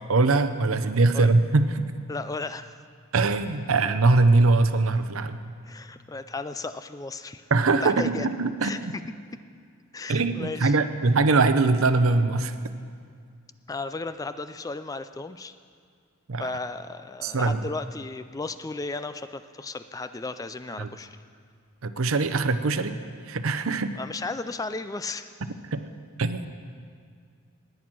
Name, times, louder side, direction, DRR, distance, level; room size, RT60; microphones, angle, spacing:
voice 1, 0.1-1.8 3.1-5.4 7.5-8.9 10.1-12.5 16.3-16.5 17.2-17.6 20.8-20.9 21.8-23.0 23.3-23.9 25.7-25.8 26.2-26.5, right 3 dB, 75° right, 10 dB, 0.7 m, -22 dB
voice 2, 2.1-2.7 5.6-7.5 7.8-8.3 8.6-8.8 9.9-10.8 13.7-15.5 16.4-21.1 24.0-25.3, left 3 dB, 15° left, 12 dB, 0.3 m, -35 dB
19.5 x 9.3 x 6.1 m, 2.1 s
head